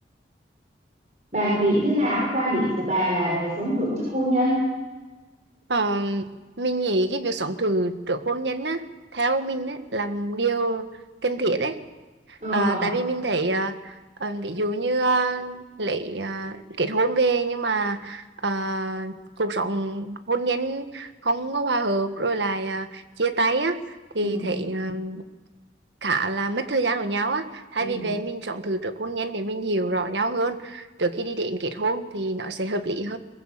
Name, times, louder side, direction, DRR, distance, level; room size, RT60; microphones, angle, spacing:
voice 1, 1.3-4.6 12.4-12.9 24.2-24.5 27.8-28.1, equal, 40° right, -5 dB, 6.7 m, -24 dB
voice 2, 5.7-6.3 6.6-8.8 9.1-10.9 11.2-11.8 12.3-13.9 14.2-25.2 26.0-33.2, right 2 dB, 85° right, 8 dB, 1.7 m, -26 dB
22.5 x 21.5 x 7.6 m, 1.2 s
head